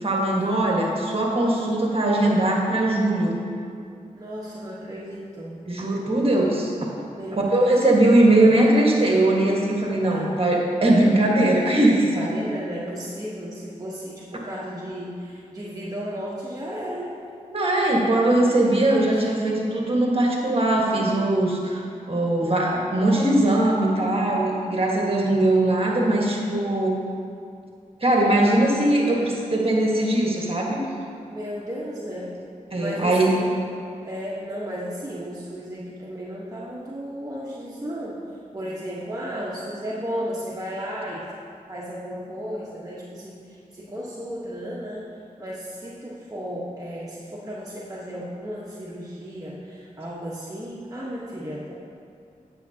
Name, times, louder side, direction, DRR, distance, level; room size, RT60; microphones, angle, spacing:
voice 1, 0.0-3.3 5.7-6.7 7.3-12.4 17.5-21.8 22.1-27.0 28.0-30.8 32.7-33.3, right 1 dB, 40° right, -2 dB, 1.6 m, -20 dB
voice 2, 4.1-5.6 7.1-7.8 10.1-10.3 11.6-17.1 19.1-19.2 22.1-22.2 29.9-30.1 31.3-32.3 32.8-33.5 34.0-38.2 38.5-41.2 41.7-45.0 45.4-51.7, equal, 25° right, -6 dB, 1.2 m, -34 dB
9.1 x 7.4 x 2.8 m, 2.4 s
cardioid pair, 45°, 14 cm